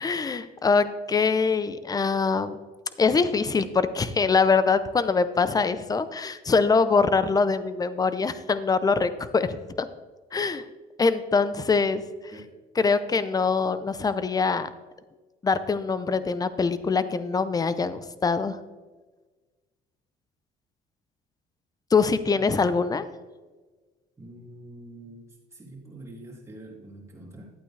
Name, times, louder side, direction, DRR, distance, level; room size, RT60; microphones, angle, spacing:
voice 1, 0.0-2.6 3.0-9.9 10.3-10.6 11.0-12.0 12.8-14.7 15.4-18.6 21.9-23.1, left 4 dB, 20° left, 13 dB, 0.6 m, -23 dB
voice 2, 22.3-22.7 24.2-25.2 25.5-27.5, right 1 dB, 15° right, -3 dB, 3.2 m, -45 dB
12.0 x 8.7 x 3.3 m, 1.3 s
cardioid pair, 110°, 17 cm